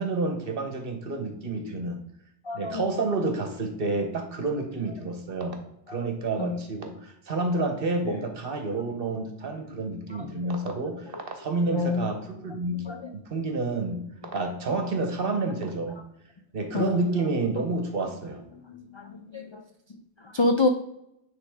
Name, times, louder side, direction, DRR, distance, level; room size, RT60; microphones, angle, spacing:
voice 1, 0.0-2.0 2.5-5.6 5.9-14.0 14.3-16.0 16.5-18.4, right 3 dB, 55° right, 5 dB, 1.2 m, -29 dB
voice 2, 2.4-2.9 5.9-6.1 6.4-6.6 8.1-8.2 10.1-10.7 11.7-12.1 12.9-13.0 16.7-17.1 18.7-19.6 20.2-20.7, left 3 dB, 50° left, 5 dB, 0.3 m, -28 dB
9.7 x 3.6 x 3.5 m, 0.80 s
omnidirectional pair, 1.1 m